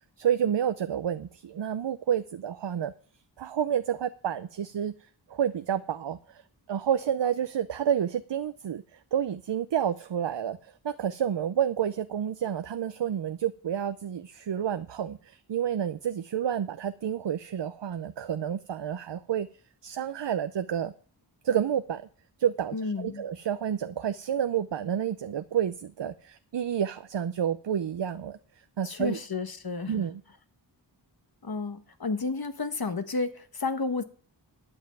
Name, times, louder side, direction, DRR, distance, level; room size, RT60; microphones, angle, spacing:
voice 1, 0.2-2.9 3.4-4.9 5.3-6.4 6.7-19.5 19.8-20.9 21.4-22.0 22.4-28.4 28.8-29.2 29.9-30.2, right 9 dB, 70° right, 0.6 m, -29 dB
voice 2, 22.7-23.2 28.8-30.0 31.4-34.0, left 4 dB, 55° left, 1.3 m, -31 dB
12.0 x 5.5 x 9.0 m
wide cardioid pair, 50°, 45 cm